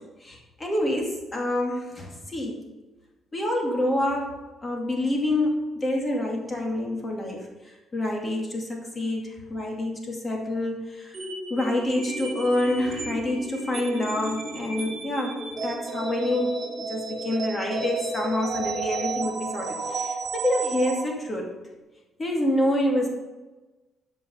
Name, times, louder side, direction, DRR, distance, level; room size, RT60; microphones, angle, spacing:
voice 1, 0.0-2.6 3.3-4.3 4.6-11.2 11.5-21.5 22.2-23.1, left 1 dB, 25° left, 0 dB, 2.4 m, -27 dB
sound 1, 11.1-21.0, right 3 dB, 50° right, 2.0 m, -32 dB
12.5 x 5.5 x 5.6 m, 1.2 s
cardioid pair, 90°, 0 cm